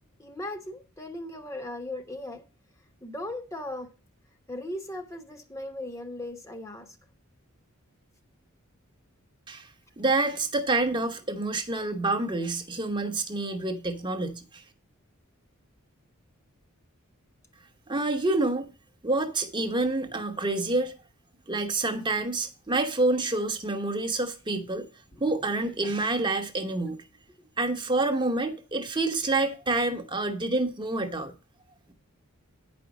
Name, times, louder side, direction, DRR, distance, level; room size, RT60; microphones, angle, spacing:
voice 1, 0.2-2.4 3.0-3.9 4.5-7.0 25.1-25.2, left 1 dB, 15° left, 1.1 m, -37 dB
voice 2, 10.0-14.6 17.9-18.7 19.0-20.9 21.5-24.9 25.2-27.0 27.6-31.3, right 2 dB, 20° right, 1.0 m, -27 dB
9.8 x 5.2 x 6.0 m
head